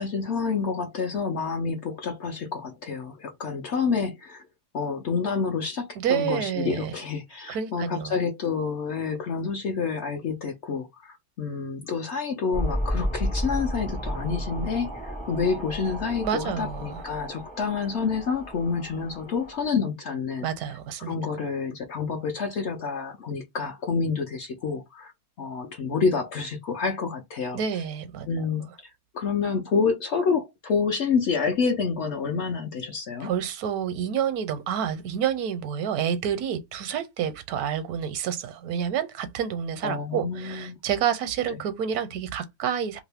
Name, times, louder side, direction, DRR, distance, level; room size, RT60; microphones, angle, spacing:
voice 1, 0.0-4.4 4.7-20.5 21.0-25.1 25.4-27.6 28.3-33.3 39.8-40.8 41.5-41.6, left 5 dB, 65° left, 0.7 m, -28 dB
voice 2, 6.0-6.9 7.5-8.2 16.2-17.0 20.4-21.2 27.5-28.3 33.2-43.0, right 8 dB, 80° right, 1.1 m, -29 dB
sound 1, 12.5-19.7, equal, 10° left, 0.4 m, -33 dB
2.8 x 2.5 x 3.4 m
omnidirectional pair, 1.6 m